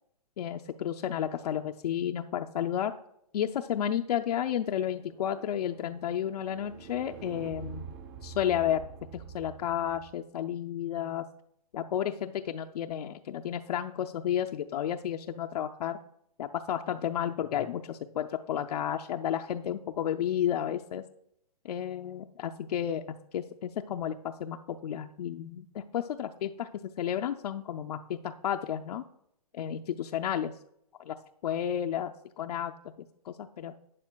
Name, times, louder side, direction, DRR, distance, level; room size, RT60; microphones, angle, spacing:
voice 1, 0.4-2.9 3.3-7.9 8.2-8.8 9.1-11.3 11.7-16.0 16.4-21.0 21.6-29.0 29.5-30.5 31.0-31.2 31.4-32.7 33.0-33.7, left 10 dB, 70° left, 4 dB, 0.5 m, -32 dB
sound 1, 4.5-10.1, right 7 dB, 35° right, 0.8 m, -47 dB
12.0 x 8.5 x 2.3 m, 0.76 s
hypercardioid pair, 155°, 20 cm